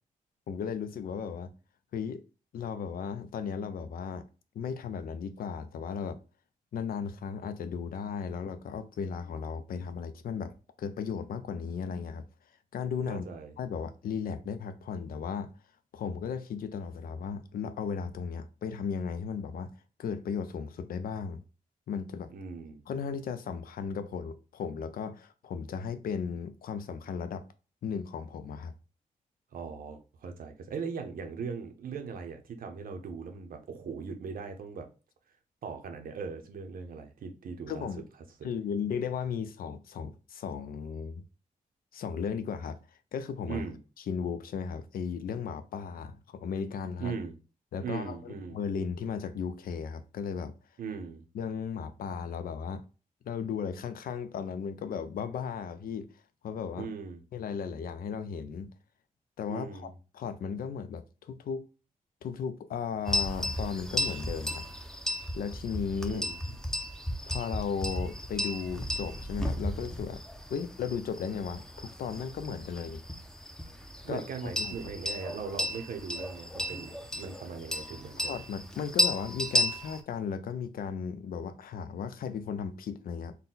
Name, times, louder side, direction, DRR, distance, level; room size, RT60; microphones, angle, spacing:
voice 1, 0.5-1.5 1.9-2.2 2.5-4.2 4.5-6.2 6.7-10.5 10.8-12.2 12.7-13.2 13.6-15.5 15.9-19.7 20.0-21.4 21.9-22.3 22.9-27.4 27.8-28.7 37.7-38.1 38.4-41.2 41.9-42.8 43.1-43.6 44.1-47.1 47.7-50.5 51.3-52.8 53.2-56.1 56.4-56.9 57.3-58.7 59.4-61.7 62.2-64.6 65.3-66.3 67.3-70.2 70.5-73.0 74.1-74.3 74.6-74.8 78.2-83.3, left 6 dB, 90° left, 0.5 m, -35 dB
voice 2, 13.1-13.5 22.3-22.8 29.5-34.9 35.6-37.9 43.5-43.8 47.0-47.4 47.8-48.6 50.8-51.2 56.8-57.2 59.5-59.9 66.1-66.4 74.0-78.4, right 5 dB, 85° right, 0.8 m, -39 dB
sound 1, 63.1-80.0, equal, 5° left, 0.5 m, -34 dB
4.0 x 2.2 x 3.9 m
wide cardioid pair, 150°, 15 cm